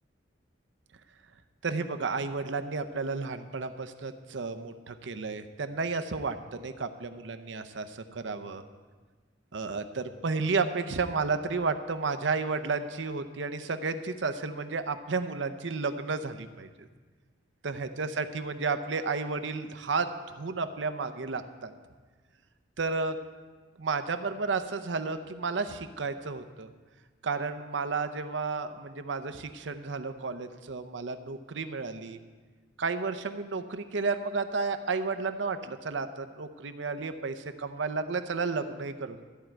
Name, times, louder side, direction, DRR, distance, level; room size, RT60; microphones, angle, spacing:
voice 1, 1.6-8.6 9.5-16.9 17.6-21.7 22.8-23.2 23.8-26.7 27.2-32.2 32.8-39.2, right 4 dB, 90° right, 9 dB, 0.7 m, -32 dB
13.5 x 4.6 x 8.8 m, 1.4 s
head